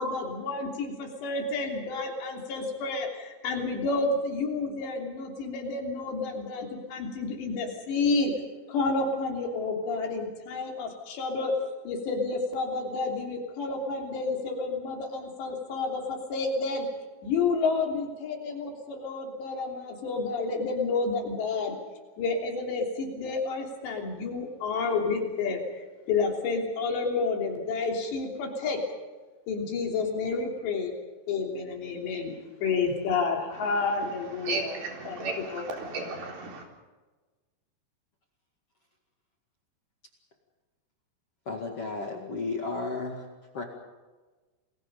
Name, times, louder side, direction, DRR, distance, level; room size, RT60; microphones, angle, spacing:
voice 1, 0.0-8.3 8.7-11.5 11.9-16.9 17.2-21.8 22.2-28.8 29.5-30.9 31.3-34.7 35.1-35.3 35.5-35.6, left 4 dB, 80° left, 2 dB, 5.5 m, -30 dB
voice 2, 33.5-36.7, right 3 dB, 60° right, 1 dB, 5.5 m, -35 dB
voice 3, 41.5-43.2 43.5-43.6, left 3 dB, 45° left, 2 dB, 2.4 m, -33 dB
29.0 x 21.5 x 5.5 m, 1.3 s
omnidirectional pair, 4.9 m